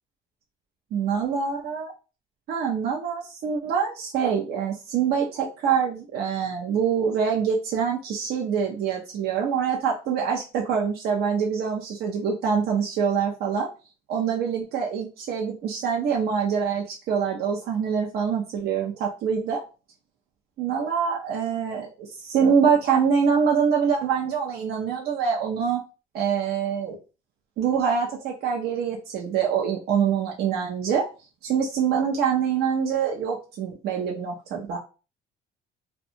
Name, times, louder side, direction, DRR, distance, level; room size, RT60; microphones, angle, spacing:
voice 1, 0.9-1.9 2.5-13.7 14.1-19.6 20.6-25.8 26.1-27.0 27.6-31.1 31.4-34.8, right 7 dB, 70° right, -1 dB, 0.6 m, -25 dB
2.5 x 2.2 x 2.8 m, 0.32 s
cardioid pair, 110°, 17 cm